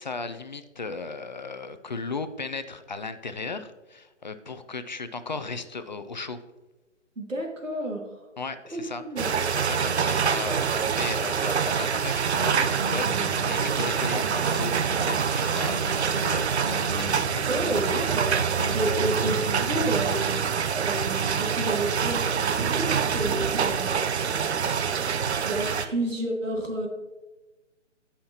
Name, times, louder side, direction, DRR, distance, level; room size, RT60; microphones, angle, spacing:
voice 1, 0.0-6.4 8.4-9.0 9.6-17.3 18.6-18.8, left 4 dB, 40° left, 11 dB, 0.4 m, -36 dB
voice 2, 7.2-8.2 8.7-9.3 17.5-18.4 18.7-20.5 20.8-24.0 25.4-26.9, right 1 dB, 85° right, 0 dB, 2.3 m, -30 dB
sound 1, 9.2-25.9, right 6 dB, 60° right, 0.6 m, -26 dB
sound 2, 12.3-20.3, right 1 dB, 30° right, 0.8 m, -37 dB
15.5 x 5.7 x 2.9 m, 1.2 s
figure-of-eight pair, 145°, 37 cm